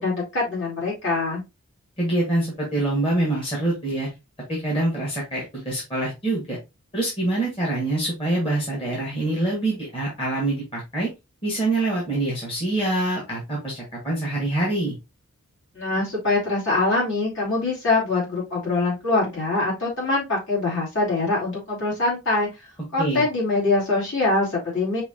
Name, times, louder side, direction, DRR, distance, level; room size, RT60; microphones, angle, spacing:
voice 1, 0.0-1.4 15.7-22.5 22.9-25.0, left 2 dB, 55° left, -5 dB, 2.8 m, -23 dB
voice 2, 2.0-4.1 4.5-6.6 6.9-11.1 11.4-14.9 23.0-23.2, right 2 dB, 25° left, -4 dB, 1.6 m, -25 dB
5.5 x 2.9 x 2.7 m, 0.24 s
head